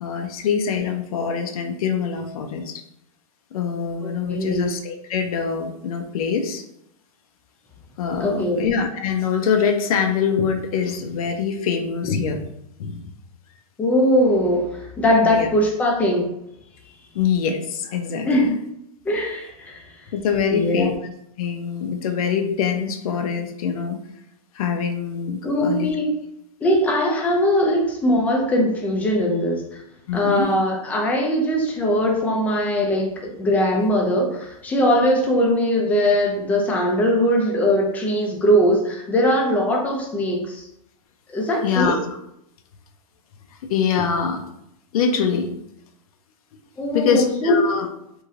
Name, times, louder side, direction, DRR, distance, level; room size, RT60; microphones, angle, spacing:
voice 1, 0.0-2.8 3.5-6.6 8.0-12.4 12.8-13.0 15.2-15.5 17.1-18.4 20.1-21.0 21.4-24.0 24.5-25.9 30.1-30.5 41.6-42.2 43.7-44.4 44.9-45.5 46.9-47.9, left 6 dB, 70° left, 5 dB, 0.5 m, -24 dB
voice 2, 4.0-4.7 8.2-8.6 13.8-16.3 18.3-18.5 19.1-19.8 20.5-20.9 25.4-26.1 26.6-29.8 30.1-40.6 41.3-42.0 46.8-47.7, equal, 10° left, 0 dB, 0.4 m, -20 dB
3.1 x 2.6 x 2.4 m, 0.79 s
supercardioid pair, 155°, 19 cm